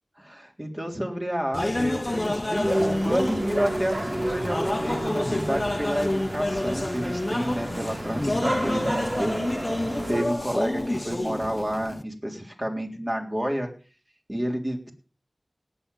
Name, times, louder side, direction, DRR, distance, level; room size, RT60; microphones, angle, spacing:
voice 1, 0.2-9.5 9.8-13.7 14.3-14.9, equal, 20° right, 2 dB, 3.6 m, -30 dB
sound 1, 1.5-12.0, left 1 dB, 35° left, 0.7 m, -29 dB
sound 2, 2.2-11.9, equal, ahead, 3.9 m, -42 dB
sound 3, 2.6-10.2, right 1 dB, 50° right, 3.4 m, -31 dB
18.5 x 7.7 x 5.5 m, 0.37 s
wide cardioid pair, 60°, 0 cm